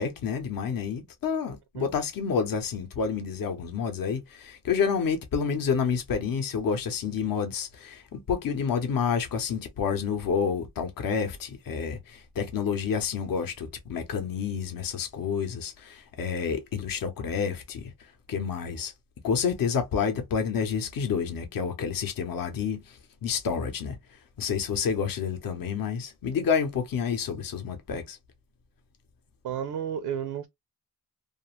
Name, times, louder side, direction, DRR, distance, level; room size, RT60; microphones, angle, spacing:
voice 1, 0.0-18.9 19.2-28.2, left 6 dB, 60° left, 0.8 m, -29 dB
voice 2, 29.4-30.5, right 9 dB, 80° right, 0.5 m, -32 dB
2.5 x 2.4 x 2.9 m
wide cardioid pair, 120°, 38 cm